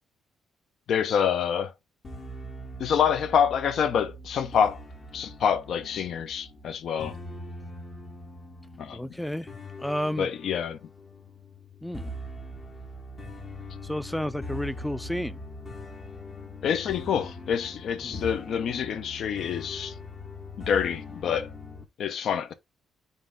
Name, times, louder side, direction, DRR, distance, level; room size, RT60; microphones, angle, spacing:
voice 1, 0.9-1.7 2.8-4.8 5.1-7.1 8.8-9.0 10.2-10.8 16.6-19.9 20.7-21.5 22.0-22.5, left 7 dB, 65° left, 0.5 m, -26 dB
sound 1, 2.0-21.8, left 1 dB, 40° left, 1.1 m, -41 dB
voice 2, 8.9-9.5 9.8-10.3 11.8-12.1 13.8-15.4 18.0-18.1, equal, 5° left, 0.3 m, -31 dB
3.8 x 2.5 x 3.6 m
cardioid pair, 90°, 0 cm